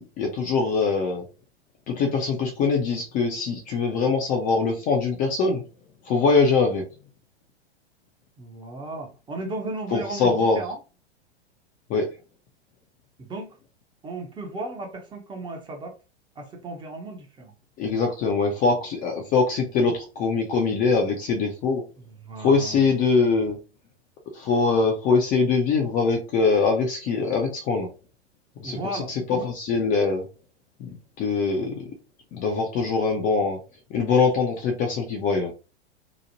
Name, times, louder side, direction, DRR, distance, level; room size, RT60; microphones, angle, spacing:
voice 1, 0.2-1.2 1.9-5.6 6.1-6.8 9.9-10.6 11.9-12.1 17.8-21.8 22.4-23.6 24.3-27.9 28.6-28.8 29.3-30.3 30.8-31.9 32.3-33.6 33.9-35.5, left 4 dB, 25° left, 0.5 m, -23 dB
voice 2, 8.4-10.8 13.2-13.5 14.0-16.0 16.4-17.5 22.2-23.4 28.6-29.5, right 2 dB, 15° right, 0.7 m, -35 dB
2.9 x 2.1 x 2.7 m
figure-of-eight pair, 105°, 34 cm